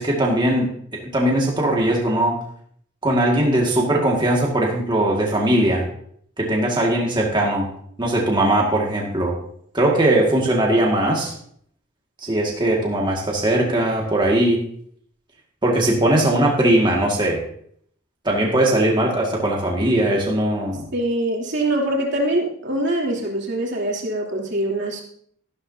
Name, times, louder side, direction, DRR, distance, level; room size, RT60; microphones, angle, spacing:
voice 1, 0.0-2.4 3.0-5.9 6.4-7.7 8.0-9.4 9.7-11.3 12.2-14.6 15.6-17.4 18.2-20.9, right 1 dB, 20° right, -2 dB, 1.9 m, -20 dB
voice 2, 20.9-25.0, right 1 dB, 55° right, -2 dB, 3.1 m, -23 dB
14.0 x 12.0 x 2.8 m, 0.64 s
head